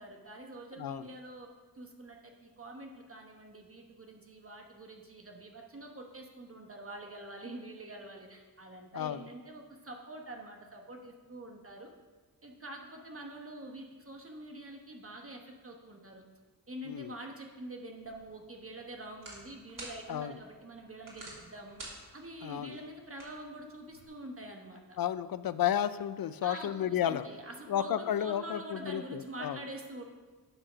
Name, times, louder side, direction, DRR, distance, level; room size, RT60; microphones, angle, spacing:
voice 1, 0.0-1.5 1.7-11.9 12.4-16.2 16.7-21.8 22.1-25.0 26.4-30.0, right 1 dB, 35° right, 2 dB, 1.0 m, -46 dB
sound 1, 18.0-24.1, right 2 dB, 55° right, 2.8 m, -51 dB
voice 2, 22.4-22.8 25.0-27.3 27.7-29.6, left 10 dB, 60° left, 14 dB, 0.5 m, -32 dB
8.7 x 4.8 x 6.2 m, 1.4 s
cardioid pair, 65°, 39 cm